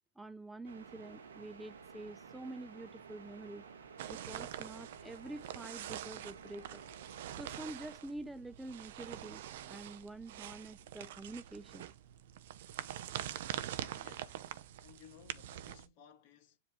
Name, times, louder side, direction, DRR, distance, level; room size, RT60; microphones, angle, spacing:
voice 1, 0.2-3.7 4.1-6.8 7.4-9.4 9.7-11.8, right 2 dB, 5° right, 0.3 m, -47 dB
sound 1, 0.6-7.6, right 6 dB, 80° right, 1.1 m, -53 dB
sound 2, 4.0-15.9, right 11 dB, 60° right, 0.7 m, -45 dB
voice 2, 14.0-14.4 14.8-16.6, left 9 dB, 50° left, 1.8 m, -59 dB
7.6 x 3.0 x 4.7 m
hypercardioid pair, 115°, 0 cm